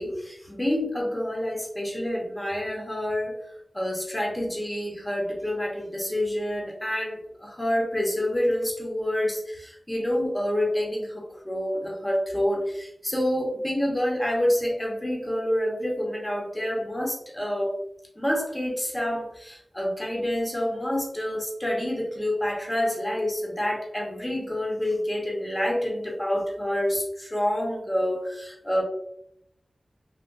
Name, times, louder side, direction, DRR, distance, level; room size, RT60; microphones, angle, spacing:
voice 1, 0.0-3.4 3.7-17.7 18.2-28.8, left 1 dB, 15° left, -1 dB, 0.8 m, -28 dB
3.6 x 2.5 x 2.2 m, 0.74 s
wide cardioid pair, 80°, 0 cm